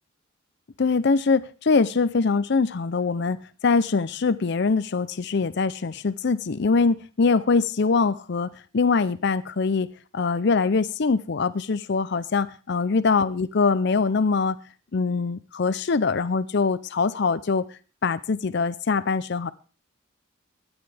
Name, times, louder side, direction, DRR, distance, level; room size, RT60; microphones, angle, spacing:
voice 1, 0.8-3.4 3.6-9.9 10.1-14.6 14.9-17.7 18.0-19.5, left 4 dB, 55° left, 15 dB, 0.5 m, -23 dB
16.5 x 12.0 x 3.4 m, 0.35 s
head